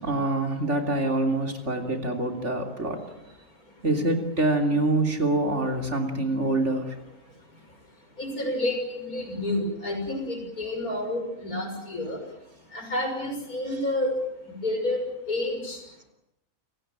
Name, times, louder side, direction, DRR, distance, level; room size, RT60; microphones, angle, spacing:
voice 1, 0.0-3.0 3.8-6.9, right 2 dB, 50° right, 4 dB, 3.6 m, -25 dB
voice 2, 8.2-12.2 12.7-14.2 14.6-15.8, left 1 dB, 80° left, 4 dB, 6.8 m, -29 dB
29.0 x 17.5 x 9.0 m, 0.86 s
omnidirectional pair, 1.5 m